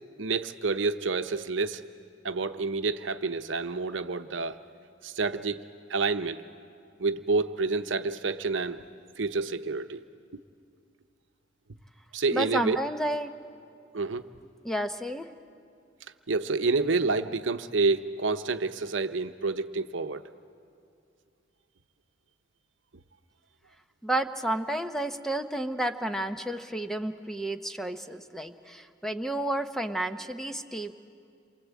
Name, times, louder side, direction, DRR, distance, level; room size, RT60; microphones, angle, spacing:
voice 1, 0.2-1.8 2.2-4.6 5.0-6.4 7.0-8.8 9.2-10.0 12.1-12.8 13.9-14.2 16.3-20.2, right 3 dB, 75° right, 9 dB, 0.9 m, -28 dB
voice 2, 12.3-13.3 14.6-15.3 24.0-30.9, right 1 dB, ahead, 7 dB, 0.8 m, -31 dB
28.5 x 23.5 x 8.3 m, 2.4 s
head